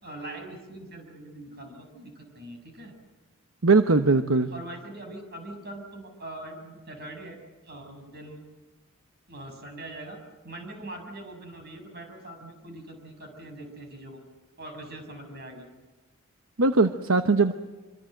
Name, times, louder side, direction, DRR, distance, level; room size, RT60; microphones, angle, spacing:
voice 1, 0.0-2.9 4.5-7.4 7.6-8.4 9.3-14.2 14.6-15.7, right 1 dB, 50° right, 5 dB, 6.5 m, -42 dB
voice 2, 3.6-4.5 16.6-17.5, right 3 dB, 70° right, 8 dB, 1.0 m, -20 dB
25.5 x 25.0 x 7.9 m, 1.2 s
head